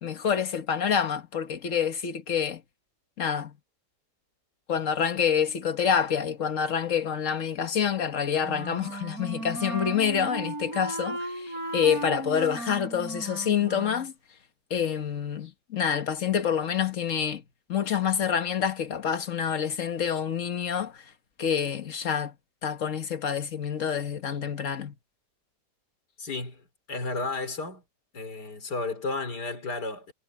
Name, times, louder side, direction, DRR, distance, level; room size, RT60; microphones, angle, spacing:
voice 1, 0.0-2.6 3.2-3.6 4.7-14.1 14.7-17.4 17.7-21.0 21.4-22.3 22.6-24.9, left 7 dB, 50° left, 1.6 m, -27 dB
Wind instrument woodwind instrument, 8.4-14.1, right 1 dB, 60° right, 5.7 m, -36 dB
voice 2, 26.2-27.8 28.1-30.1, left 3 dB, 75° left, 4.3 m, -33 dB
omnidirectional pair, 1.8 m